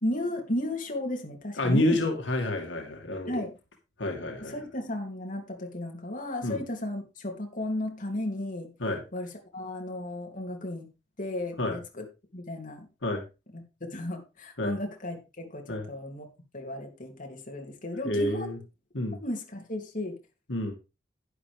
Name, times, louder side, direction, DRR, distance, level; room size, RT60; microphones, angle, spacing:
voice 1, 0.0-2.0 3.3-3.6 4.4-8.7 9.1-9.3 9.5-10.9 11.2-12.0 12.3-12.9 13.5-16.3 16.5-18.5 19.2-20.2, left 1 dB, 45° left, 2 dB, 2.8 m, -34 dB
voice 2, 1.6-3.3 4.0-4.5 6.4-6.6 8.8-9.0 11.6-11.8 13.0-13.2 14.6-14.7 15.7-15.9 18.0-18.6 18.9-19.2 20.5-20.7, left 1 dB, 80° left, 3 dB, 2.3 m, -28 dB
11.0 x 10.5 x 3.4 m, 0.29 s
head